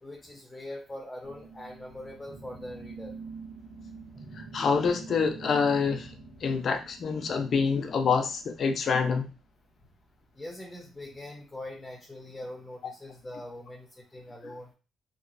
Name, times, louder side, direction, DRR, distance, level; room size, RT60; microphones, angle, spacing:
voice 1, 0.0-3.1 10.4-14.7, left 1 dB, 15° left, 1 dB, 0.9 m, -42 dB
sound 1, 1.2-9.0, right 4 dB, 20° right, 1.6 m, -46 dB
voice 2, 4.5-6.1 6.4-9.3 12.8-12.9, left 5 dB, 55° left, 6 dB, 0.7 m, -26 dB
3.6 x 3.0 x 2.6 m, 0.33 s
cardioid pair, 90°, 0 cm